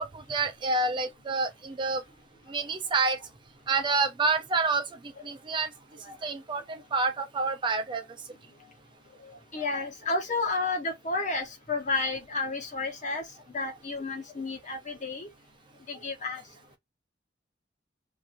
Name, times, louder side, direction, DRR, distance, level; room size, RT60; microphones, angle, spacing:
voice 1, 0.0-2.0 2.5-3.2 3.7-4.8 5.2-5.7 6.2-8.0, right 3 dB, 25° right, 0.3 m, -28 dB
voice 2, 9.2-13.2 13.5-15.3 15.9-16.4, left 3 dB, 40° left, 0.9 m, -31 dB
2.8 x 2.5 x 2.5 m
head